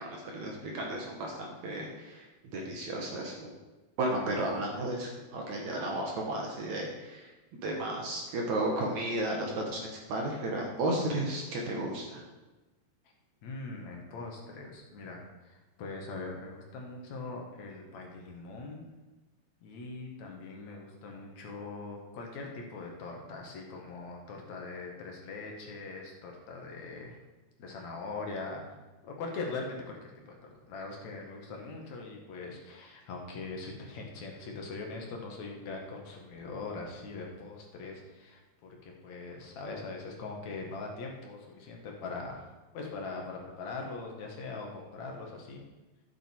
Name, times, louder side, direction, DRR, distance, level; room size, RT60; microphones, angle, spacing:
voice 1, 0.0-2.3 2.5-3.5 4.0-12.2, right 1 dB, 60° right, 0 dB, 2.1 m, -33 dB
voice 2, 13.4-18.9 19.6-27.2 27.6-28.6 29.0-45.6, left 3 dB, 55° left, 0 dB, 2.3 m, -41 dB
11.5 x 8.6 x 4.6 m, 1.1 s
omnidirectional pair, 4.8 m